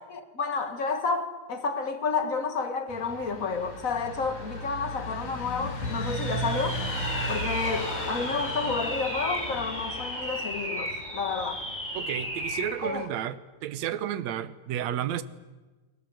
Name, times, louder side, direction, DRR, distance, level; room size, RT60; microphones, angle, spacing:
voice 1, 0.0-6.8 7.3-11.6 12.8-13.1, left 4 dB, 40° left, 1.1 m, -30 dB
sound 1, 2.9-12.9, equal, 55° left, 5.4 m, -36 dB
sound 2, 5.8-12.8, equal, 5° left, 6.4 m, -35 dB
voice 2, 11.9-15.2, right 10 dB, 65° right, 1.8 m, -32 dB
30.0 x 21.0 x 7.9 m
omnidirectional pair, 4.4 m